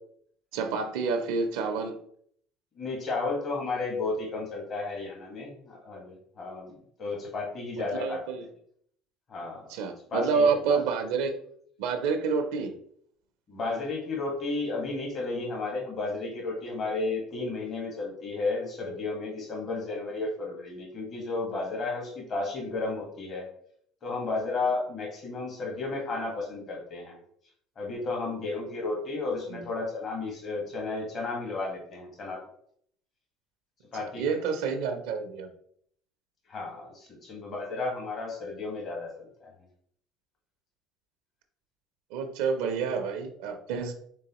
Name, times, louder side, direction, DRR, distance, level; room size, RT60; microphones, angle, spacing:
voice 1, 0.5-2.0 7.8-8.4 9.7-11.3 11.8-12.7 29.5-29.6 34.2-35.5 42.1-43.9, right 5 dB, 85° right, 6 dB, 0.5 m, -28 dB
voice 2, 2.8-8.5 9.3-9.7 10.1-10.8 13.5-23.5 24.0-27.2 27.8-32.4 33.9-34.4 36.5-39.5, left 3 dB, 45° left, -1 dB, 1.3 m, -33 dB
3.8 x 3.4 x 2.9 m, 0.65 s
supercardioid pair, 95°, 0 cm